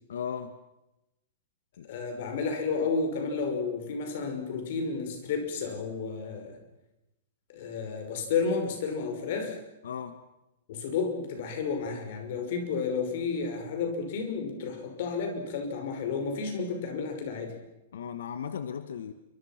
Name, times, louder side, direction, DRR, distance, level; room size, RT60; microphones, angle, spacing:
voice 1, 0.1-0.5 1.8-1.9 9.8-10.2 17.9-19.1, left 7 dB, 90° left, 10 dB, 1.5 m, -36 dB
voice 2, 1.8-6.6 7.5-9.6 10.7-17.6, left 5 dB, 45° left, 5 dB, 5.9 m, -31 dB
28.0 x 25.0 x 6.0 m, 0.93 s
supercardioid pair, 175°, 0 cm